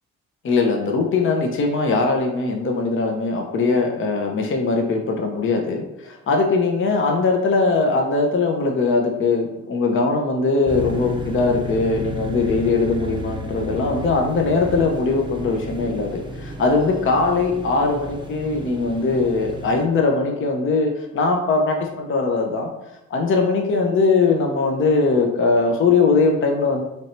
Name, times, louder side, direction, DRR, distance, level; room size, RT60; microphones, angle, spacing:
voice 1, 0.4-22.7 23.1-26.8, left 3 dB, 45° left, 2 dB, 0.6 m, -20 dB
sound 1, 10.7-19.8, equal, 15° right, 0.5 m, -32 dB
3.2 x 2.6 x 4.3 m, 0.92 s
cardioid pair, 90°, 30 cm